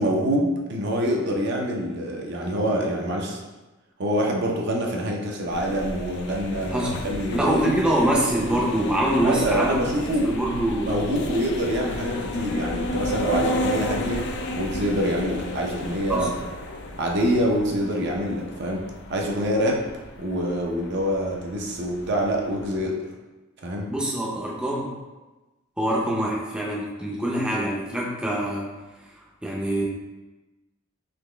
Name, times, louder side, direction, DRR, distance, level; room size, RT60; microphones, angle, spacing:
voice 1, 0.0-3.4 4.0-8.0 9.2-10.3 10.8-14.2 14.6-16.5 17.0-18.8 19.1-19.8 20.2-23.0 23.6-23.9, equal, 55° right, 0 dB, 0.6 m, -25 dB
sound 1, 5.5-22.8, left 1 dB, 60° left, 0.4 m, -33 dB
voice 2, 7.3-9.8 10.2-10.9 16.1-16.3 23.9-24.9 25.8-28.7 29.4-29.8, right 1 dB, 5° right, -4 dB, 0.5 m, -24 dB
4.1 x 2.9 x 3.2 m, 1.1 s
head